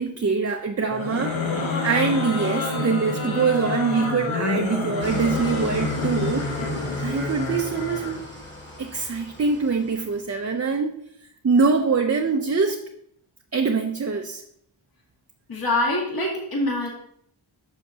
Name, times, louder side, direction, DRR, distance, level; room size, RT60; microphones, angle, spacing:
voice 1, 0.0-1.4 1.8-6.5 7.0-8.2 8.8-10.9 11.4-12.8 13.5-14.4, right 4 dB, 35° right, 4 dB, 0.6 m, -24 dB
sound 1, 0.9-8.2, left 3 dB, 80° left, 1.2 m, -28 dB
Engine starting / Idling, 5.0-10.4, left 1 dB, 25° left, 2.2 m, -39 dB
voice 2, 15.5-16.9, left 1 dB, 50° left, -2 dB, 1.9 m, -24 dB
7.9 x 6.3 x 2.8 m, 0.71 s
cardioid pair, 65°, 47 cm